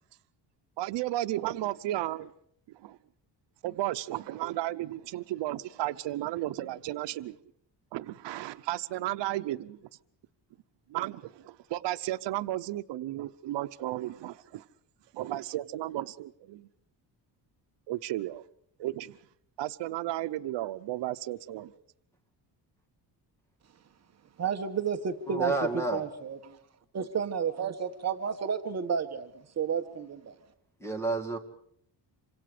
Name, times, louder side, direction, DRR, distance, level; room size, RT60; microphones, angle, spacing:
voice 1, 0.8-2.3 2.7-3.0 3.6-7.4 7.9-9.9 10.9-14.6 15.1-16.7 17.9-18.4 18.8-19.2 19.6-21.7, right 15 dB, 85° right, 0.9 m, -34 dB
voice 2, 24.4-26.4 26.9-29.3 29.6-30.3, right 7 dB, 40° right, 1.3 m, -31 dB
voice 3, 25.3-26.0 30.8-31.4, right 3 dB, 5° left, 2.4 m, -30 dB
27.0 x 25.5 x 5.0 m
cardioid pair, 175°, 42 cm